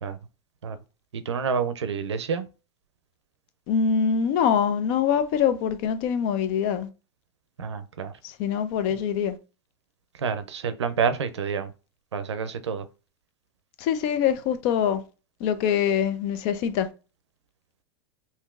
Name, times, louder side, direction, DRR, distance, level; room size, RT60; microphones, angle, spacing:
voice 1, 1.1-2.5 7.6-8.1 10.2-11.7 12.1-12.9, right 6 dB, 90° right, 0.5 m, -28 dB
voice 2, 3.7-6.9 8.2-9.4 13.8-15.0 15.4-16.9, left 7 dB, 50° left, 0.6 m, -24 dB
3.6 x 2.6 x 2.4 m
hypercardioid pair, 100°, 14 cm